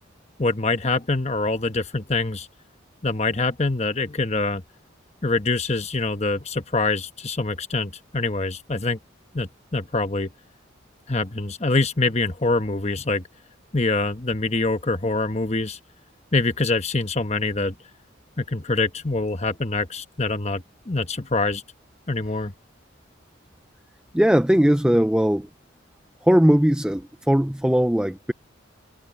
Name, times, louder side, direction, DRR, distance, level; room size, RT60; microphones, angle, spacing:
voice 1, 0.4-2.5 3.0-4.6 5.2-9.0 9.3-10.3 11.1-13.2 13.7-15.8 16.3-17.7 18.4-21.6 22.1-22.5, left 3 dB, 35° left, 1.1 m, -25 dB
voice 2, 24.1-25.5 26.2-28.3, equal, 5° right, 0.4 m, -19 dB
head